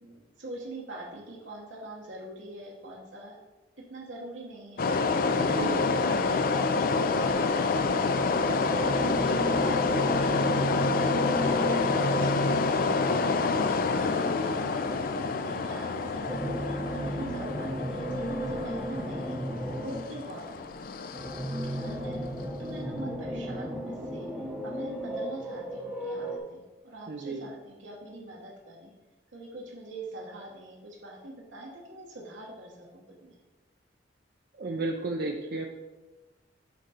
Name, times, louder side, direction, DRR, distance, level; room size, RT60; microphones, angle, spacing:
voice 1, 0.0-3.4 3.9-4.9 5.2-7.9 8.5-13.5 14.0-19.4 19.8-20.7 21.6-22.2 22.6-24.3 24.6-28.9 29.3-33.3, right 1 dB, 85° right, -3 dB, 1.3 m, -43 dB
sound 1, 4.8-22.4, left 4 dB, 50° left, 0.4 m, -28 dB
voice 2, 5.4-5.8 27.1-27.5 34.6-35.7, right 2 dB, 55° right, 2 dB, 0.5 m, -33 dB
sound 2, 8.7-13.2 16.1-20.3 21.1-26.4, equal, 5° right, 0.7 m, -34 dB
8.2 x 3.7 x 4.3 m, 1.1 s
head